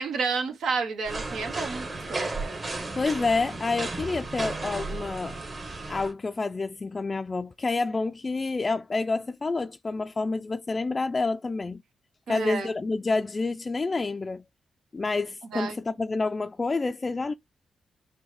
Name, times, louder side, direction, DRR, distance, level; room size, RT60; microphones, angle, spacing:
voice 1, 0.0-2.3 12.3-12.7 15.5-15.7, right 4 dB, 80° right, 1.0 m, -30 dB
sound 1, 1.0-6.1, right 2 dB, 35° right, 1.2 m, -34 dB
voice 2, 3.0-5.4 5.9-11.8 12.3-14.4 14.9-17.3, left 3 dB, 35° left, 0.3 m, -28 dB
6.0 x 2.2 x 3.2 m
cardioid pair, 70°, 0 cm